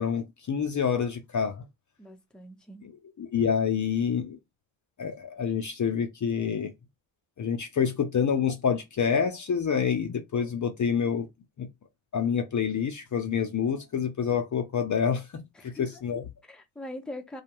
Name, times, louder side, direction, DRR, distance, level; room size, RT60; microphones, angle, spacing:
voice 1, 0.0-1.6 2.8-2.9 3.2-4.4 5.0-6.7 7.4-11.3 11.6-11.7 12.1-16.3, left 7 dB, 40° left, 0.7 m, -27 dB
voice 2, 2.0-2.8 15.6-16.0 16.4-17.4, left 1 dB, ahead, 0.7 m, -42 dB
2.4 x 2.2 x 3.0 m
supercardioid pair, 45°, 47 cm